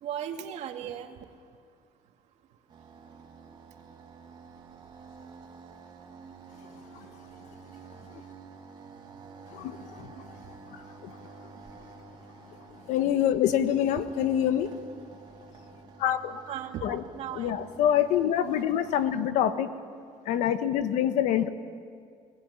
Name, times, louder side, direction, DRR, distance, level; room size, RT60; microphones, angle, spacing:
voice 1, 0.0-1.2 16.5-17.5, right 9 dB, 70° right, 5 dB, 2.2 m, -36 dB
sound 1, 2.7-19.2, right 5 dB, 40° right, 2.8 m, -50 dB
voice 2, 9.5-10.1 11.0-11.1 12.9-14.7 16.0-16.4 16.8-17.0 17.3-19.7 20.3-21.5, left 10 dB, 85° left, 10 dB, 1.4 m, -26 dB
23.0 x 20.0 x 9.8 m, 2.1 s
cardioid pair, 130°, 12 cm